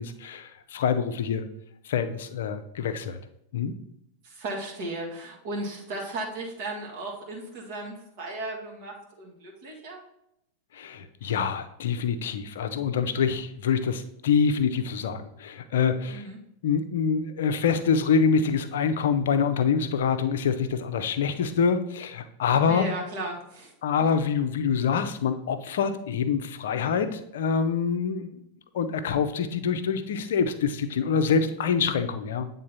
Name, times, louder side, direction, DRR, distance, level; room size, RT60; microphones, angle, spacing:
voice 1, 0.0-1.5 1.8-3.2 3.5-3.7 10.7-16.3 16.6-22.9 23.8-28.4 28.7-32.5, left 6 dB, 60° left, 9 dB, 0.6 m, -26 dB
voice 2, 4.2-10.0 16.1-16.4 22.7-23.7, right 2 dB, 50° right, -1 dB, 1.5 m, -35 dB
8.5 x 3.7 x 4.1 m, 0.78 s
figure-of-eight pair, 90°, 0 cm